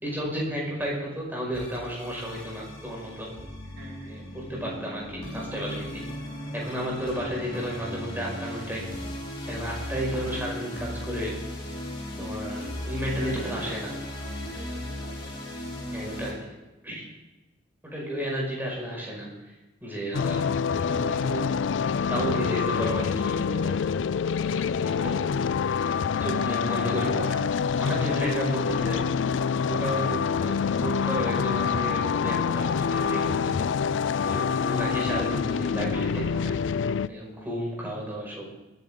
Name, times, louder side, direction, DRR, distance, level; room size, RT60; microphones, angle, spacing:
voice 1, 0.0-3.3 4.1-6.0 6.5-8.9 9.5-11.4 12.2-13.9 15.9-16.6 16.8-17.0 17.8-19.3 19.8-21.5 22.1-23.8 24.5-25.3 26.2-29.1 29.7-33.6 34.3-36.6 37.1-38.5, equal, 10° right, -3 dB, 5.5 m, -32 dB
sound 1, 1.5-16.3, left 1 dB, 30° left, 3.6 m, -37 dB
voice 2, 3.8-4.1 5.3-5.4 13.0-14.1 14.4-15.4 27.8-28.4, right 1 dB, 60° right, -1 dB, 2.3 m, -44 dB
sound 2, 20.1-37.1, left 6 dB, 80° left, 0.4 m, -26 dB
23.5 x 11.0 x 3.8 m, 1.1 s
head